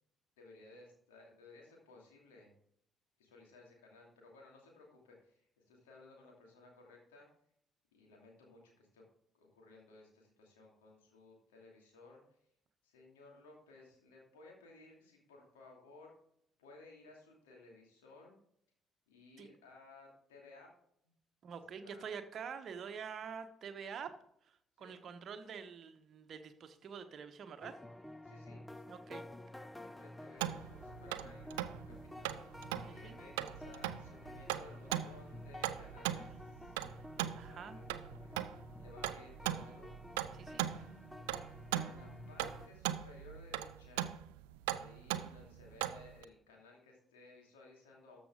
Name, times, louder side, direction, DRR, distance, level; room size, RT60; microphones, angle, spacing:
voice 1, 0.4-2.5 3.2-7.3 7.9-9.0 9.3-12.4 12.8-16.1 16.6-18.4 19.1-20.7 21.0-21.1 21.8-22.1 24.8-25.0 28.2-28.6 29.8-36.8 37.2-37.9 38.2-38.5 38.8-40.0 41.1-44.1 44.7-48.2, left 2 dB, 75° left, -1 dB, 2.6 m, -59 dB
voice 2, 21.4-24.1 24.5-27.8 28.9-29.2 32.9-33.2 37.3-37.8 40.3-40.8, right 6 dB, 50° right, 8 dB, 1.0 m, -46 dB
sound 1, 27.6-42.7, left 1 dB, 10° left, 0.7 m, -51 dB
sound 2, 30.4-46.2, right 13 dB, 75° right, 0.4 m, -40 dB
13.0 x 6.1 x 3.7 m, 0.70 s
figure-of-eight pair, 45°, 0 cm